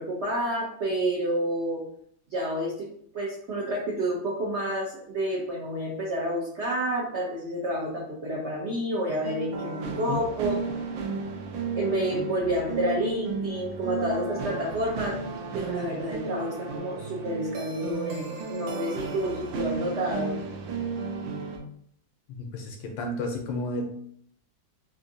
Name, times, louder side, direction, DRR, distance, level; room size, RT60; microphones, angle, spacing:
voice 1, 0.0-1.8 2.3-2.9 3.1-10.6 11.8-15.2 15.5-20.3, right 1 dB, 65° right, -4 dB, 0.6 m, -29 dB
sound 1, 9.1-21.6, right 5 dB, 85° right, 1.4 m, -34 dB
voice 2, 22.3-23.8, left 2 dB, 80° left, 3 dB, 1.4 m, -32 dB
3.7 x 2.6 x 2.6 m, 0.66 s
omnidirectional pair, 2.1 m